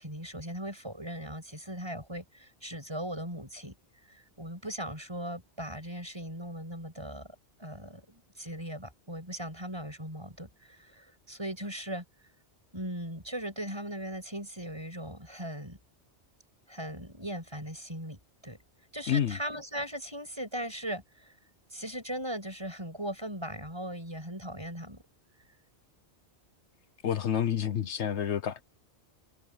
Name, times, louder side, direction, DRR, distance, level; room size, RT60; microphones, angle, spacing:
voice 1, 0.0-3.7 4.1-12.0 12.7-15.8 16.7-18.6 18.9-21.3 21.7-25.0, right 1 dB, 25° right, 8.2 m, -39 dB
voice 2, 27.0-28.6, left 9 dB, 75° left, 1.2 m, -29 dB
omnidirectional pair, 1.2 m